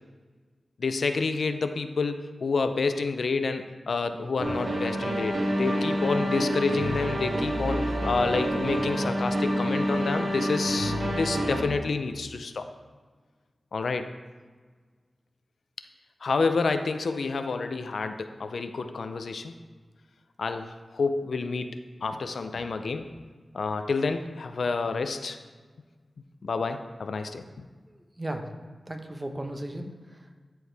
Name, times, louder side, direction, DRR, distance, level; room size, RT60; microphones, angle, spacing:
voice 1, 0.8-12.7 13.7-14.1 16.2-19.5 20.4-23.1 23.5-25.4 26.4-27.7, left 4 dB, 80° left, 8 dB, 0.4 m, -29 dB
sound 1, 4.4-11.6, equal, 75° right, 1.9 m, -28 dB
voice 2, 27.9-28.5 28.9-30.4, right 1 dB, 25° right, 4 dB, 0.9 m, -36 dB
12.5 x 4.7 x 3.4 m, 1.5 s
wide cardioid pair, 65°, 0 cm